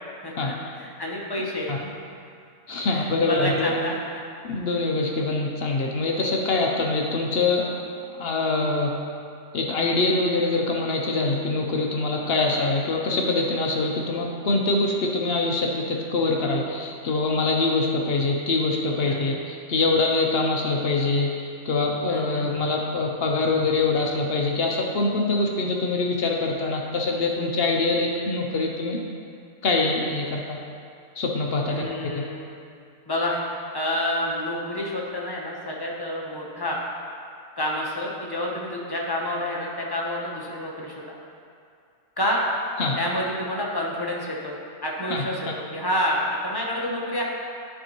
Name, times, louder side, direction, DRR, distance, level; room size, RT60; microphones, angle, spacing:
voice 1, 0.2-1.9 2.9-4.0 19.0-19.4 19.8-20.1 22.1-22.5 31.7-32.4 33.1-33.4 33.7-36.8 37.6-41.2 42.2-42.4 43.0-47.2, left 1 dB, 20° left, -3 dB, 0.7 m, -29 dB
voice 2, 2.7-3.8 4.4-7.8 8.2-8.9 9.5-29.0 29.6-30.6 31.2-31.9 32.1-32.2 42.8-43.0 45.1-45.2, left 3 dB, 60° left, 0 dB, 0.7 m, -24 dB
11.5 x 4.4 x 3.0 m, 2.4 s
omnidirectional pair, 1.5 m